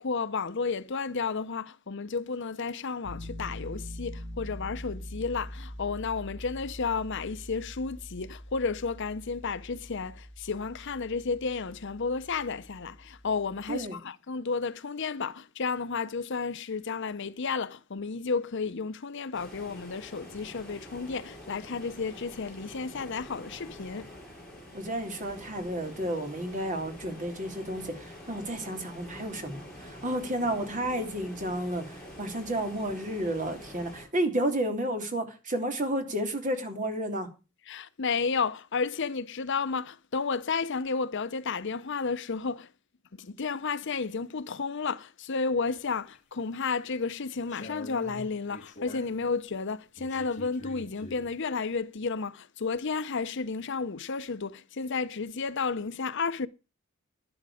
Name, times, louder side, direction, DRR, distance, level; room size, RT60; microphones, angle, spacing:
voice 1, 0.0-24.1 37.7-42.7 43.2-56.5, left 4 dB, 60° left, 0.7 m, -32 dB
Piano, 3.0-13.9, equal, 80° right, 6.8 m, -44 dB
sound 1, 19.3-34.1, equal, 5° left, 7.4 m, -46 dB
voice 2, 24.7-31.8 32.2-37.3, right 1 dB, 40° right, 3.1 m, -31 dB
sound 2, 45.8-46.4 46.9-49.3 50.0-51.3, left 2 dB, 35° left, 2.6 m, -45 dB
11.5 x 11.5 x 4.9 m
head